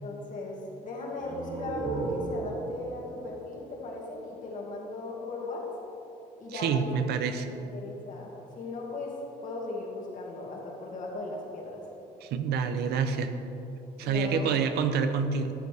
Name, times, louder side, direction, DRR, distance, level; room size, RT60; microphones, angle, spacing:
voice 1, 0.0-0.6 0.8-5.7 6.4-7.0 7.5-9.1 9.4-11.8 14.0-14.6, left 2 dB, 50° left, -2 dB, 2.0 m, -37 dB
sound 1, 1.1-4.7, right 3 dB, 30° right, 0.8 m, -37 dB
voice 2, 6.5-7.5 12.2-13.3 14.0-15.5, right 6 dB, 75° right, 8 dB, 0.7 m, -27 dB
13.0 x 6.8 x 3.4 m, 2.9 s
cardioid pair, 110°, 17 cm